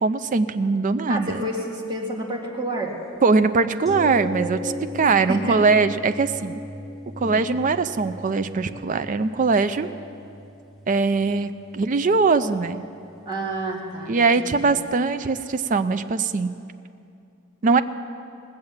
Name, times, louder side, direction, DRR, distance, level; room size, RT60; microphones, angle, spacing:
voice 1, 0.0-1.4 3.2-4.6 4.9-6.6 7.2-9.9 10.9-12.8 14.1-16.5 17.6-17.8, right 4 dB, 35° right, 10 dB, 0.4 m, -21 dB
voice 2, 1.1-2.9 4.3-5.7 7.2-7.5 13.3-14.7, right 1 dB, 20° right, -3 dB, 1.9 m, -30 dB
sound 1, 3.9-13.7 14.0-14.1, left 2 dB, ahead, 1.1 m, -38 dB
19.0 x 7.8 x 7.2 m, 2.5 s
head